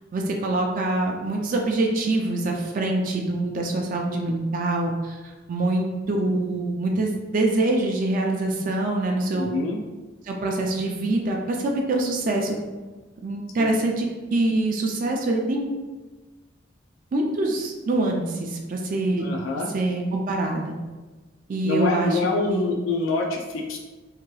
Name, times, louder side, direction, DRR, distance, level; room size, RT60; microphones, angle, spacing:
voice 1, 0.1-9.5 10.2-12.6 13.2-15.7 17.1-19.3 19.7-20.7 21.5-22.2 22.5-22.7, right 2 dB, 45° right, 1 dB, 0.3 m, -25 dB
voice 2, 9.3-9.8 13.6-13.7 19.2-19.7 21.6-23.8, left 3 dB, 85° left, 1 dB, 0.4 m, -25 dB
2.7 x 2.2 x 3.0 m, 1.2 s
head